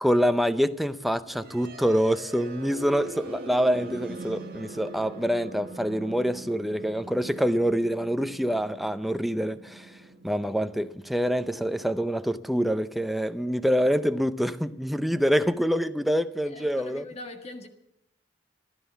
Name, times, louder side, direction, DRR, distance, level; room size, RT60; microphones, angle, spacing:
voice 1, 0.0-10.0 10.2-17.0, equal, ahead, 0.5 m, -26 dB
sound 1, 1.2-13.1, right 2 dB, 55° right, 1.7 m, -43 dB
voice 2, 16.5-17.7, left 2 dB, 35° left, 1.7 m, -41 dB
15.0 x 12.5 x 7.0 m
head